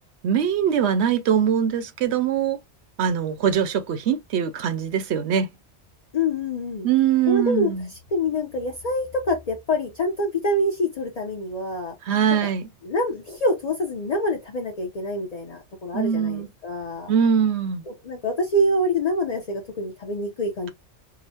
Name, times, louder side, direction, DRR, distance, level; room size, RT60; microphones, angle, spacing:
voice 1, 0.2-2.6 3.0-5.5 6.8-7.9 12.0-12.7 15.9-16.5 17.1-17.8, right 8 dB, 70° right, 0.8 m, -22 dB
voice 2, 6.1-6.9 7.3-7.7 8.1-11.9 12.3-12.5 12.8-17.1 18.0-20.7, left 1 dB, 40° left, 0.7 m, -26 dB
4.9 x 2.1 x 2.7 m
omnidirectional pair, 1.2 m